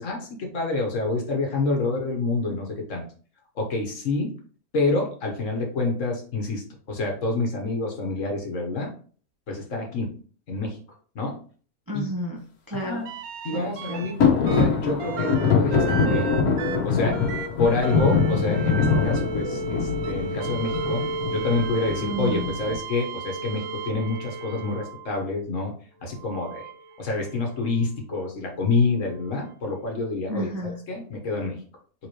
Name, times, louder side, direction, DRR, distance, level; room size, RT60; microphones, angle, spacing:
voice 1, 0.0-3.0 3.5-4.3 4.7-8.9 9.5-10.2 10.5-10.8 11.1-11.4 11.9-12.1 12.8-13.1 13.4-16.3 16.8-17.2 17.6-21.0 21.3-25.7 26.0-26.7 27.0-30.5 30.9-31.6, left 3 dB, 55° left, 1 dB, 1.5 m, -27 dB
voice 2, 11.9-13.0 13.5-14.0 22.0-22.5 30.3-30.8, equal, 20° right, -1 dB, 0.6 m, -31 dB
sound 1, 13.0-14.1 14.5-25.2 26.1-27.6 29.4-29.5, right 4 dB, 75° right, 1.1 m, -34 dB
sound 2, 14.2-22.8, left 5 dB, 75° left, 1.4 m, -24 dB
4.6 x 3.8 x 3.0 m, 0.43 s
omnidirectional pair, 1.6 m